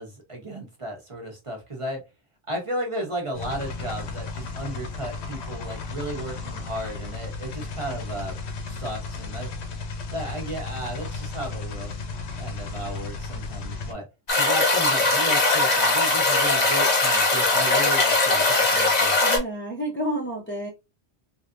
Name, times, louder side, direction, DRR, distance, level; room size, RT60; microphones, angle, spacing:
voice 1, 0.0-2.0 2.5-8.3 8.7-9.5 10.1-11.9 12.4-14.0 14.3-19.1, right 1 dB, 30° right, 0 dB, 0.9 m, -34 dB
sound 1, 3.3-13.9, left 4 dB, 75° left, 0.9 m, -34 dB
sound 2, 14.3-19.4, left 3 dB, 40° left, 1.0 m, -20 dB
voice 2, 19.2-20.7, right 1 dB, 15° left, -2 dB, 0.5 m, -30 dB
3.2 x 2.7 x 2.5 m, 0.25 s
omnidirectional pair, 1.1 m